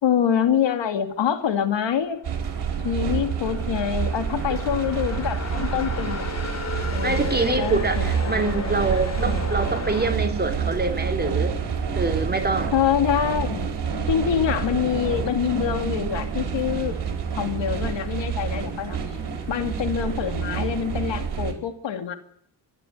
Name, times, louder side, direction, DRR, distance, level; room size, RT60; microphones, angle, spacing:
voice 1, 0.0-2.2 2.8-6.3 6.9-8.6 9.2-9.4 12.7-13.7 14.1-17.0 17.4-19.0 19.5-22.2, left 8 dB, 85° left, 8 dB, 2.6 m, -25 dB
sound 1, 2.2-10.1, left 4 dB, 40° left, 3.2 m, -34 dB
sound 2, 2.2-21.5, right 7 dB, 65° right, 4.7 m, -28 dB
voice 2, 7.0-11.6 11.9-12.7, right 3 dB, 20° right, 5 dB, 3.6 m, -25 dB
25.5 x 12.0 x 9.7 m, 0.71 s
cardioid pair, 95°, 43 cm